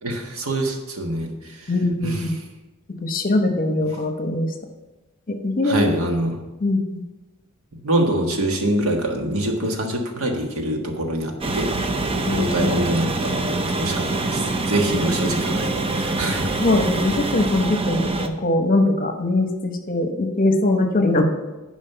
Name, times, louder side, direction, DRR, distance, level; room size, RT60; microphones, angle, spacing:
voice 1, 0.0-1.7 2.0-2.2 5.6-6.4 7.8-11.7 12.3-16.5, right 1 dB, 80° right, 2 dB, 1.5 m, -25 dB
voice 2, 1.7-2.4 3.0-4.5 5.3-5.8 6.6-7.0 12.2-12.7 16.6-21.2, left 2 dB, 40° left, 5 dB, 1.0 m, -21 dB
sound 1, 11.4-18.3, right 2 dB, 25° right, 0.6 m, -24 dB
10.5 x 5.0 x 5.7 m, 1.1 s
head